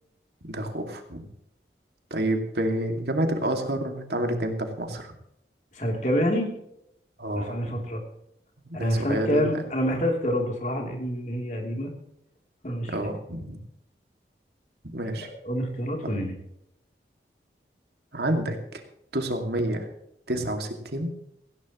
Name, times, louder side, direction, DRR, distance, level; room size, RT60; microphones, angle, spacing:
voice 1, 0.5-1.2 2.1-5.1 7.2-7.7 8.6-9.6 12.9-13.6 14.8-15.3 16.0-16.2 18.1-18.8 19.1-19.9 20.3-21.1, right 1 dB, 70° right, 4 dB, 2.4 m, -29 dB
voice 2, 5.7-6.5 7.3-8.0 8.7-11.9 12.6-13.0 15.2-16.3, equal, 45° left, 1 dB, 3.3 m, -27 dB
18.0 x 16.5 x 3.1 m, 0.76 s
head